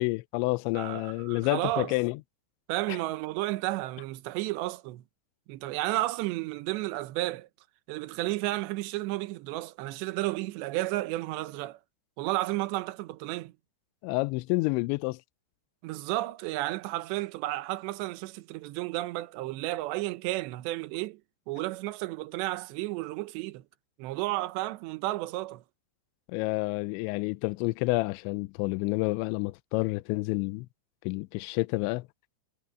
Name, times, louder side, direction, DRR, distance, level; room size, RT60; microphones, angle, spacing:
voice 1, 0.0-2.2 2.9-3.0 14.0-15.2 26.3-30.7 31.1-32.0, left 24 dB, 85° left, 2.8 m, -29 dB
voice 2, 0.8-1.9 2.7-5.0 5.5-7.5 7.9-11.8 12.2-13.5 15.8-21.2 21.5-23.6 24.0-25.6, right 17 dB, 75° right, 3.1 m, -32 dB
omnidirectional pair, 5.3 m